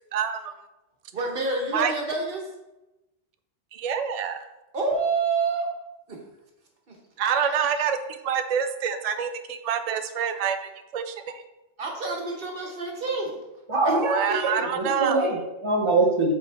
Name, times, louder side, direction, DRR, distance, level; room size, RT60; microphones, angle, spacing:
voice 1, 0.1-0.5 1.7-1.9 3.7-4.4 7.2-8.0 8.2-11.4 14.0-15.2, right 7 dB, 75° right, 9 dB, 0.3 m, -27 dB
voice 2, 1.1-2.5 4.7-5.7 6.1-6.2 6.9-7.0 7.4-7.8 11.8-13.4 13.8-13.9, right 3 dB, 50° right, 0 dB, 1.3 m, -28 dB
voice 3, 13.7-16.3, right 2 dB, 25° right, 0 dB, 1.1 m, -24 dB
8.1 x 4.4 x 3.5 m, 0.99 s
omnidirectional pair, 1.2 m